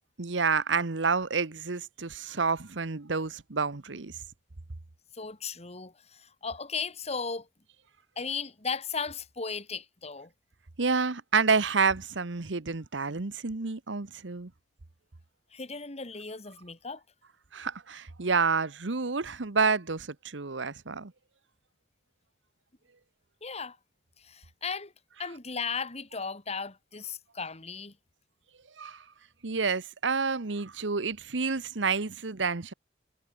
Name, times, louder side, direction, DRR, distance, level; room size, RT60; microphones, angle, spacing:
voice 1, 0.2-4.2 10.8-14.5 17.5-21.1 28.8-29.0 29.4-32.7, right 5 dB, 85° right, 1.1 m, -29 dB
voice 2, 5.1-7.5 8.2-10.3 15.5-17.0 23.4-23.8 24.2-24.9 25.2-27.9, left 5 dB, 35° left, 2.5 m, -36 dB
head